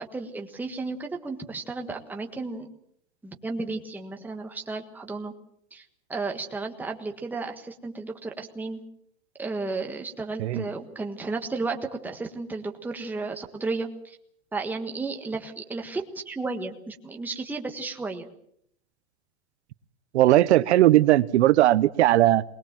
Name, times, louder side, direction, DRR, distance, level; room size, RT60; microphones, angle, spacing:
voice 1, 0.0-2.7 3.2-5.3 5.7-5.8 6.1-8.8 9.4-14.2 14.5-18.3, right 3 dB, 5° right, 3 dB, 1.5 m, -33 dB
voice 2, 20.1-22.4, right 14 dB, 85° right, 14 dB, 1.0 m, -18 dB
21.5 x 20.0 x 7.5 m, 0.70 s
supercardioid pair, 165°, 33 cm